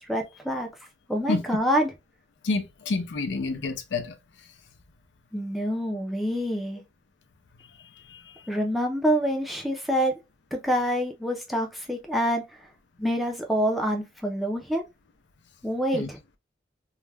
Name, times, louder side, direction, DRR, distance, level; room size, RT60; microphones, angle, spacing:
voice 1, 0.1-0.7 1.1-1.9 5.3-6.8 8.5-10.2 10.5-12.4 13.0-14.8 15.6-16.2, equal, ahead, 0.4 m, -26 dB
voice 2, 2.4-4.2 7.8-8.5 15.9-16.1, left 3 dB, 80° left, 0.5 m, -29 dB
2.3 x 2.1 x 3.1 m
head